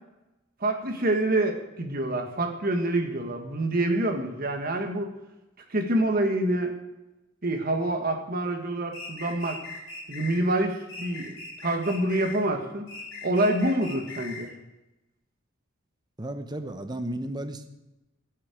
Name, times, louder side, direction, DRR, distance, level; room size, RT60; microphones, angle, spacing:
voice 1, 0.6-5.1 5.7-6.7 7.4-9.6 10.1-11.3 11.6-12.9 13.2-14.5, right 1 dB, 45° right, 3 dB, 1.6 m, -26 dB
sound 1, 8.9-10.4 10.9-12.4 12.9-14.5, left 3 dB, 75° left, 4.3 m, -40 dB
voice 2, 16.2-17.7, right 1 dB, 20° right, 8 dB, 0.9 m, -34 dB
16.5 x 7.6 x 5.1 m, 0.99 s
head